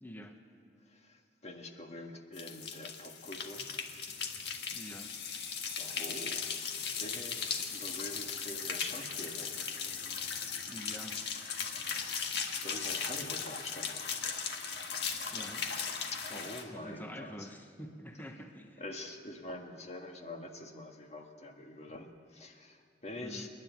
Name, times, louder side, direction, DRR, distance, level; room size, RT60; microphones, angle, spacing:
voice 1, 0.0-0.4 4.7-5.1 10.7-11.2 15.3-15.7 16.3-16.4 16.7-18.9 23.2-23.5, equal, 10° left, 4 dB, 1.1 m, -47 dB
voice 2, 0.9-3.7 5.8-6.5 7.0-9.7 11.8-14.2 16.1-17.5 18.8-23.5, left 1 dB, 40° left, 4 dB, 1.6 m, -46 dB
sound 1, 2.3-16.6, left 6 dB, 65° left, 1.7 m, -38 dB
29.0 x 10.5 x 9.5 m, 2.2 s
head